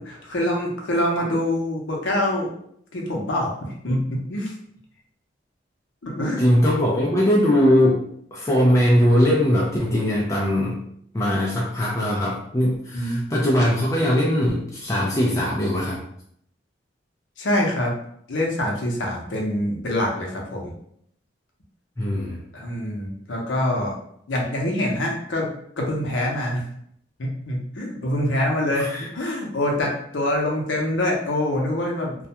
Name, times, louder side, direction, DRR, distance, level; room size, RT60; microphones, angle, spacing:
voice 1, 0.1-2.5 2.9-4.5 6.0-6.5 12.9-13.2 17.4-17.9 18.3-20.7 22.5-23.9 24.3-25.5 25.8-26.6 27.2-32.1, left 1 dB, 80° left, -1 dB, 0.6 m, -25 dB
voice 2, 6.4-8.0 8.3-10.8 11.1-16.0 22.0-22.4 28.8-29.1, equal, 15° left, -4 dB, 0.3 m, -20 dB
2.3 x 2.1 x 2.8 m, 0.68 s
head